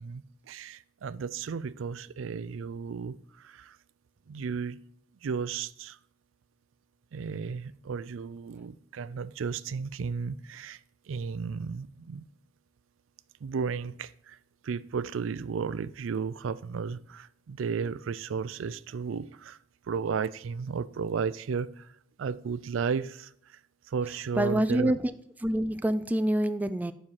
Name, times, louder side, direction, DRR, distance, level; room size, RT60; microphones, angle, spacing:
voice 1, 0.0-3.8 4.3-4.8 5.2-6.0 7.1-10.8 11.1-12.3 13.4-14.4 14.6-19.6 19.8-21.9 22.2-23.6 23.9-24.9, right 5 dB, 85° right, 17 dB, 0.4 m, -34 dB
voice 2, 24.4-25.1 25.4-26.9, right 1 dB, 10° right, 11 dB, 0.3 m, -26 dB
7.3 x 5.6 x 4.7 m, 0.67 s
head